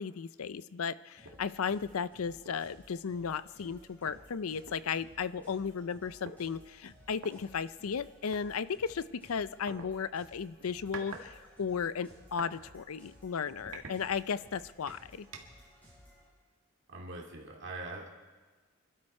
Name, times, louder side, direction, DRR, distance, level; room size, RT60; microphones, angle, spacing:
voice 1, 0.0-15.3, left 6 dB, 85° left, 16 dB, 0.5 m, -35 dB
sound 1, 1.2-16.3, equal, 10° left, 6.2 m, -59 dB
sound 2, 1.2-1.4 1.9-2.0 2.4-2.7 3.7-3.8 4.0-5.5 6.2-6.4 7.2-7.3 8.3-8.5 9.7-9.9 10.6-11.3 11.6-12.6 13.0-13.2 13.7-14.5 14.9-15.7, right 3 dB, 80° right, 1.8 m, -47 dB
voice 2, 16.9-18.1, right 2 dB, 55° right, 0 dB, 2.4 m, -42 dB
26.5 x 12.5 x 4.4 m, 1.4 s
head